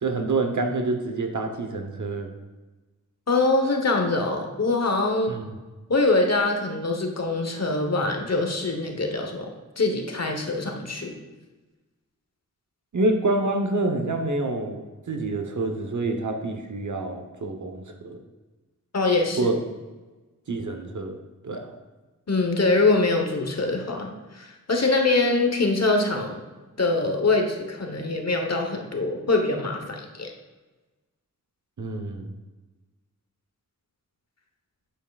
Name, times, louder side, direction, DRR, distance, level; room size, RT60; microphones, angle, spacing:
voice 1, 0.0-2.3 5.3-5.5 12.9-18.2 19.4-19.6 20.5-21.2 21.4-21.6 31.8-32.3, right 2 dB, 60° right, 4 dB, 1.0 m, -27 dB
voice 2, 3.3-5.4 5.9-9.5 9.8-11.1 18.9-19.5 22.3-26.4 26.8-30.3, left 3 dB, 50° left, 3 dB, 1.1 m, -24 dB
8.9 x 7.4 x 2.4 m, 1.2 s
wide cardioid pair, 65°, 33 cm